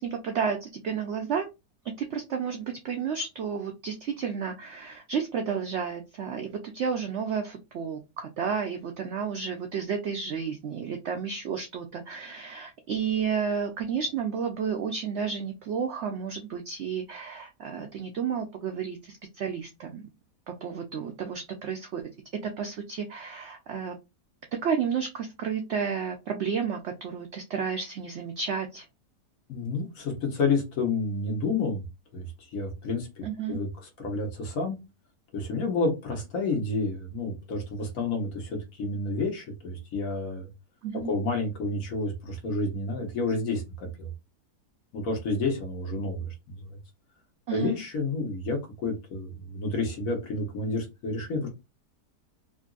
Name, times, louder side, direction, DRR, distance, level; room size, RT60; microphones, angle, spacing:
voice 1, 0.0-1.5 2.0-20.1 20.5-22.0 22.4-24.0 24.6-28.8 33.2-33.6 40.8-41.1 47.5-47.8, right 6 dB, 90° right, 4 dB, 0.6 m, -31 dB
voice 2, 29.5-31.8 32.1-33.7 34.0-34.8 35.3-40.5 41.0-44.1 44.9-46.7 47.5-51.5, left 3 dB, 60° left, 2 dB, 1.4 m, -30 dB
3.7 x 2.5 x 2.4 m, 0.25 s
omnidirectional pair, 1.8 m